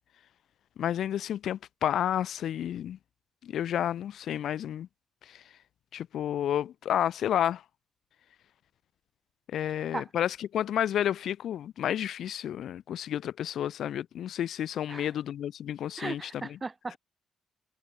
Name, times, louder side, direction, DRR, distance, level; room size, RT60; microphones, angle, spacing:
voice 1, 0.8-3.0 3.4-4.9 5.3-5.4 5.9-7.6 9.5-16.6, left 10 dB, 70° left, 0.7 m, -31 dB
voice 2, 16.0-17.0, right 3 dB, 25° right, 4.4 m, -37 dB
cardioid pair, 90°, 0 cm